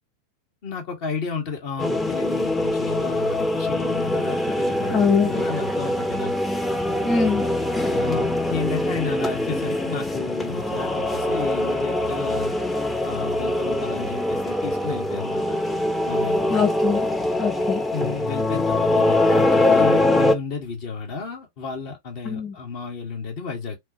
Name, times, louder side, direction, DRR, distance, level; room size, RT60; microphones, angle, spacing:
voice 1, 0.6-6.3 7.9-12.5 13.0-15.6 16.0-16.5 17.9-23.8, left 5 dB, 45° left, 1.5 m, -32 dB
sound 1, 1.8-20.3, left 1 dB, 5° left, 0.7 m, -23 dB
voice 2, 4.9-5.4 7.0-7.4 16.5-17.0 17.4-17.8 22.2-22.5, left 5 dB, 25° left, 1.6 m, -22 dB
4.2 x 3.3 x 2.9 m
figure-of-eight pair, 90°, 0 cm